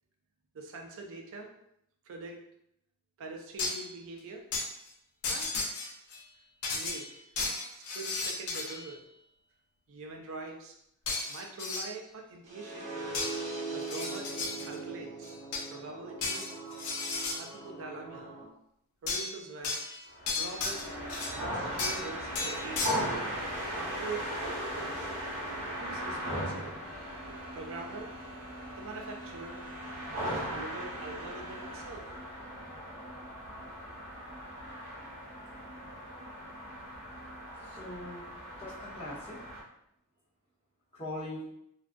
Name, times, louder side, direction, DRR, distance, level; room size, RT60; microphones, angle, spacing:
voice 1, 0.5-1.5 2.1-2.4 3.2-4.4 5.3-5.5 6.7-7.3 7.7-9.0 9.9-10.7 11.3-12.9 13.7-14.3 14.6-15.4 15.7-16.5 17.4-18.3 19.0-19.8 20.4-20.8 21.3-23.2 23.7-25.1 25.8-26.8 27.5-28.1 28.8-29.6 30.1-32.0, right 3 dB, 65° right, 2 dB, 0.4 m, -43 dB
sound 1, 3.6-3.9 4.5-4.6 5.2-6.2 6.6-8.9 11.1-11.9 13.1-13.4 13.8-14.8 15.2-15.8 16.2-17.4 19.1-19.3 19.6-21.4 21.8-22.1 22.4-22.9, left 3 dB, 80° left, 0.5 m, -34 dB
sound 2, 12.4-18.4, right 3 dB, 35° right, 0.8 m, -41 dB
sound 3, 20.1-39.6, equal, 80° right, 0.8 m, -38 dB
voice 2, 37.6-38.3 38.6-39.4 40.9-41.5, left 1 dB, 25° left, -8 dB, 0.9 m, -41 dB
2.5 x 2.2 x 2.4 m, 0.76 s
head